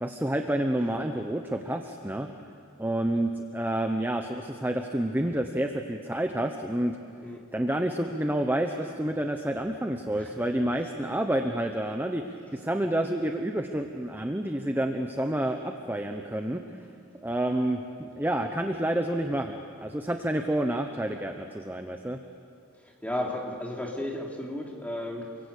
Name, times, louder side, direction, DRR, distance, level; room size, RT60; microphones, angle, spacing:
voice 1, 0.0-2.3 2.8-7.0 7.5-16.6 17.2-22.2, right 1 dB, 10° right, 4 dB, 1.0 m, -29 dB
voice 2, 10.2-10.6 15.4-15.6 16.8-16.9 22.7-25.4, left 1 dB, 5° left, -1 dB, 3.1 m, -35 dB
29.0 x 23.5 x 8.5 m, 2.4 s
head